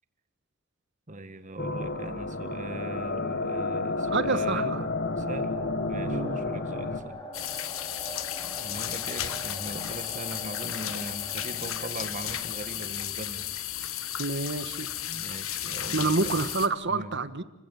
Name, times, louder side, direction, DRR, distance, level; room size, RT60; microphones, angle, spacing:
voice 1, 1.1-4.7 5.2-5.5 5.9-7.2 7.9-8.1 8.4-13.5 14.1-14.2 15.1-16.5 16.8-17.1, right 1 dB, 40° right, 10 dB, 1.9 m, -40 dB
sound 1, 1.6-7.0, left 3 dB, 55° left, 1.5 m, -31 dB
sound 2, 2.4-13.3, left 1 dB, 20° left, 4.0 m, -45 dB
voice 2, 4.1-4.8 6.0-6.4 14.2-14.9 15.9-17.4, right 3 dB, 60° right, 13 dB, 1.4 m, -28 dB
sound 3, 7.3-16.7, left 11 dB, 80° left, 1.5 m, -34 dB
29.5 x 16.0 x 8.7 m, 1.0 s
head